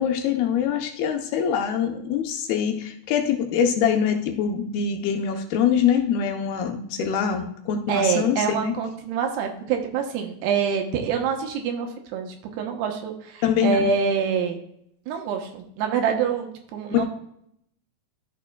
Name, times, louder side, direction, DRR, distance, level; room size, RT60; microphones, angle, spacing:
voice 1, 0.0-8.7 13.4-13.8 16.9-17.1, left 8 dB, 75° left, 4 dB, 2.7 m, -24 dB
voice 2, 7.9-14.6 15.1-17.1, right 6 dB, 80° right, 3 dB, 3.1 m, -26 dB
13.5 x 6.8 x 2.3 m, 0.73 s
omnidirectional pair, 4.7 m